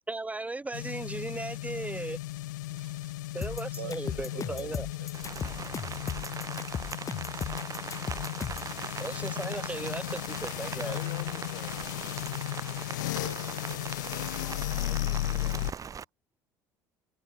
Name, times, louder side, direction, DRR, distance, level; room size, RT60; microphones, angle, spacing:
voice 1, 0.1-2.2 2.7-3.0 3.3-4.9 9.0-11.0, right 2 dB, 15° right, 1.4 m, -37 dB
sound 1, 0.7-15.7, left 17 dB, 80° left, 0.5 m, -35 dB
voice 2, 2.8-4.7 5.0-5.1 5.4-5.5 13.2-14.5, right 17 dB, 80° right, 1.9 m, -47 dB
sound 2, 3.4-8.7, left 7 dB, 35° left, 1.2 m, -37 dB
Rain, 5.1-16.0, right 7 dB, 35° right, 1.6 m, -41 dB
voice 3, 10.8-12.5 14.8-16.0, left 14 dB, 55° left, 8.0 m, -48 dB
hypercardioid pair, 65°, 10 cm